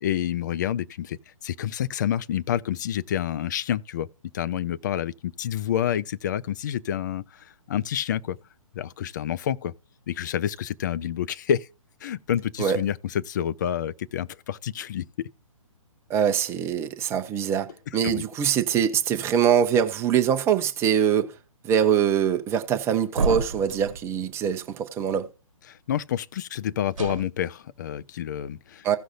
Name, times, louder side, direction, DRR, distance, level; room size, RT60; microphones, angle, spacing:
voice 1, 0.0-4.1 4.3-8.4 8.7-9.7 10.1-11.7 12.0-15.3 18.0-18.2 25.7-29.0, left 10 dB, 35° left, 0.4 m, -28 dB
voice 2, 16.1-17.7 17.9-21.3 21.6-25.3 28.8-29.0, right 8 dB, 15° right, 0.8 m, -23 dB
sound 1, 23.2-24.0 26.9-27.2, right 4 dB, 65° right, 1.1 m, -28 dB
16.5 x 6.2 x 2.6 m
figure-of-eight pair, 130°, 18 cm